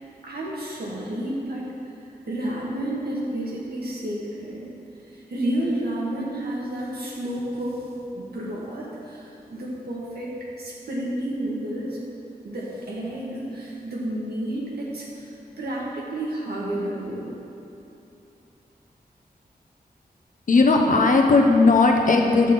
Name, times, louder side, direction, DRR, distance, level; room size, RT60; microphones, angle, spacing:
voice 1, 0.2-1.7 2.3-4.7 5.1-12.0 12.4-17.3, right 1 dB, 80° right, -4 dB, 2.0 m, -31 dB
voice 2, 20.5-22.5, left 3 dB, 55° left, 2 dB, 1.0 m, -17 dB
11.5 x 4.3 x 7.5 m, 2.9 s
wide cardioid pair, 105°, 16 cm